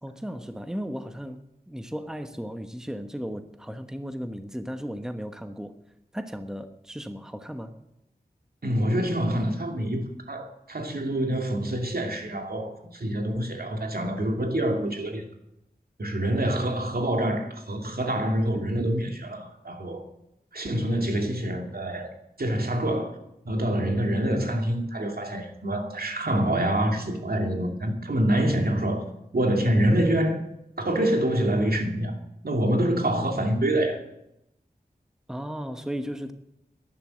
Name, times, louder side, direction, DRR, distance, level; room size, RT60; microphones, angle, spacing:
voice 1, 0.0-5.7 6.1-7.7 35.3-36.3, equal, 5° right, 1.1 m, -35 dB
voice 2, 8.6-15.3 16.0-20.0 20.5-22.1 22.4-23.2 23.4-29.0 29.3-30.4 30.8-32.2 32.4-34.0, right 1 dB, 70° right, 2.4 m, -26 dB
11.0 x 11.0 x 7.7 m
wide cardioid pair, 50°, 16 cm